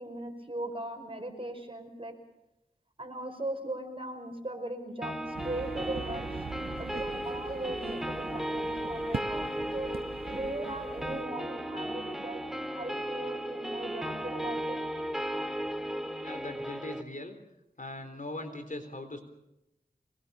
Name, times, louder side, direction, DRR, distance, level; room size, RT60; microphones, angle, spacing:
voice 1, 0.0-2.1 3.0-6.5 6.8-9.5 9.7-9.9 10.3-12.4 12.7-14.8, right 1 dB, 35° right, 5 dB, 5.3 m, -38 dB
sound 1, 5.0-17.0, equal, ahead, 1.9 m, -35 dB
sound 2, 5.3-11.2, right 5 dB, 75° right, 0.8 m, -42 dB
voice 2, 16.0-17.4 17.8-19.2, left 2 dB, 55° left, 7 dB, 3.8 m, -40 dB
24.5 x 20.5 x 7.0 m, 0.87 s
wide cardioid pair, 50°, 16 cm